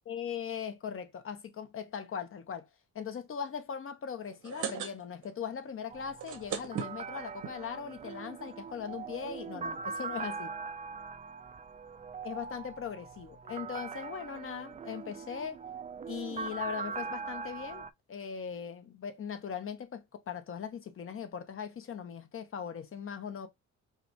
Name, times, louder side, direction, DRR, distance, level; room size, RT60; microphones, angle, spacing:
voice 1, 0.1-2.7 2.9-10.6 12.2-15.6 16.1-23.5, left 7 dB, 45° left, 0.9 m, -39 dB
sound 1, 4.2-5.4 5.6-5.7 6.1-7.5 8.2-8.3 8.6-8.7 8.8-9.1, right 8 dB, 80° right, 1.0 m, -38 dB
sound 2, 5.9-17.9, right 5 dB, 25° right, 0.3 m, -41 dB
4.8 x 2.2 x 2.9 m
cardioid pair, 90°, 30 cm